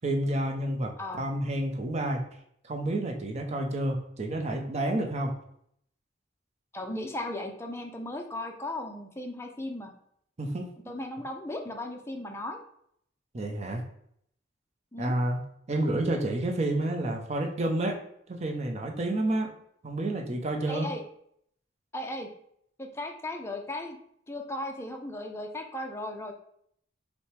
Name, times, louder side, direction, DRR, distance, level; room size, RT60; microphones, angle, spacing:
voice 1, 0.0-2.2 2.7-5.4 10.4-10.7 13.3-13.8 15.0-15.4 15.7-18.0 18.3-19.5 19.8-20.9, right 1 dB, 35° right, 2 dB, 0.6 m, -29 dB
voice 2, 6.7-9.9 10.9-12.6 14.9-15.1 20.7-21.0 21.9-22.3 22.8-24.0 24.3-26.3, left 1 dB, 15° left, 3 dB, 0.5 m, -36 dB
5.6 x 2.1 x 3.3 m, 0.69 s
head